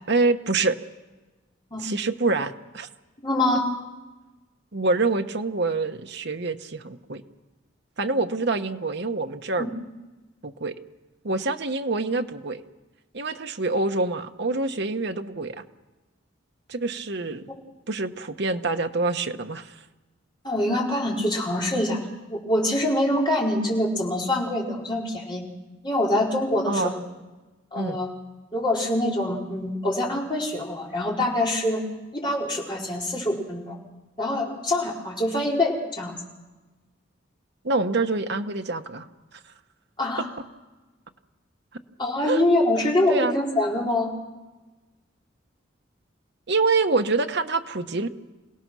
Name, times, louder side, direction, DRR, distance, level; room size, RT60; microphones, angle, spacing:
voice 1, 0.1-0.8 1.8-2.9 4.7-7.2 8.0-9.7 10.4-10.8 11.2-12.6 13.1-15.6 16.7-17.5 17.9-19.8 26.7-26.9 27.8-28.0 37.6-39.1 42.2-42.4 43.1-43.3 46.5-48.1, right 3 dB, 55° right, 6 dB, 1.1 m, -26 dB
voice 2, 3.2-3.6 9.6-9.7 20.4-22.0 22.3-25.4 25.8-26.9 27.7-28.1 28.5-31.8 32.1-33.8 34.2-36.2 40.0-40.3 42.0-44.1, left 1 dB, 25° left, -4 dB, 4.3 m, -25 dB
28.0 x 18.0 x 6.2 m, 1.2 s
head